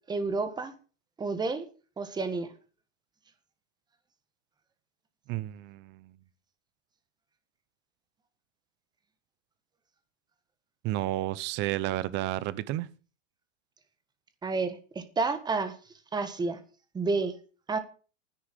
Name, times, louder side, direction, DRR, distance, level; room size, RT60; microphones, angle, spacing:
voice 1, 0.1-0.7 1.2-1.7 2.0-2.5 14.4-15.7 16.1-16.6 16.9-17.4 17.7-17.8, right 3 dB, 10° right, 1.5 m, -30 dB
voice 2, 5.3-6.2 10.8-12.9, right 15 dB, 30° right, 0.8 m, -31 dB
10.0 x 9.5 x 6.7 m
supercardioid pair, 150°, 37 cm